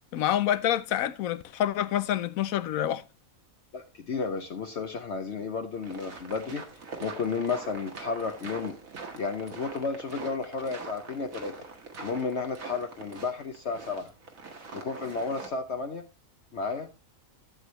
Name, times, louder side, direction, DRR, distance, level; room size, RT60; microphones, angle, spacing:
voice 1, 0.1-3.0, left 11 dB, 80° left, 1.1 m, -27 dB
voice 2, 3.7-6.6 7.0-8.7 9.2-11.5 12.0-14.1 14.7-16.1 16.5-16.9, left 4 dB, 55° left, 1.1 m, -32 dB
sound 1, 5.7-15.5, right 4 dB, 75° right, 2.1 m, -43 dB
12.5 x 8.0 x 3.1 m
omnidirectional pair, 1.4 m